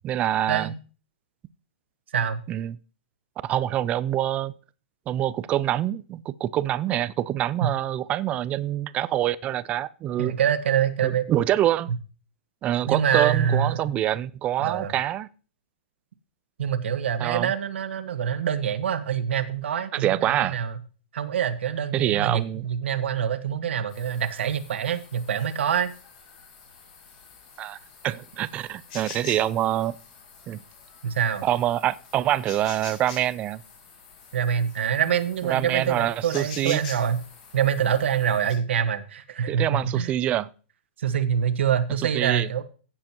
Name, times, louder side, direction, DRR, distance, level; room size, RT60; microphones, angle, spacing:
voice 1, 0.0-0.7 2.5-2.8 3.4-4.5 5.1-10.3 11.0-11.9 12.6-15.3 17.2-17.5 19.9-20.6 21.9-22.7 27.6-27.8 28.0-30.0 30.5-30.6 31.4-33.6 35.5-36.8 39.5-40.5 42.0-42.5, right 12 dB, 20° right, 0.4 m, -25 dB
voice 2, 10.2-11.3 12.9-13.8 14.6-14.9 16.6-20.8 21.1-25.9 31.0-31.4 34.3-37.2 37.5-40.1 41.0-42.6, right 8 dB, 75° right, 1.5 m, -25 dB
sound 1, 23.9-38.5, left 5 dB, 45° left, 6.2 m, -46 dB
16.0 x 7.6 x 3.0 m
hypercardioid pair, 155°, 6 cm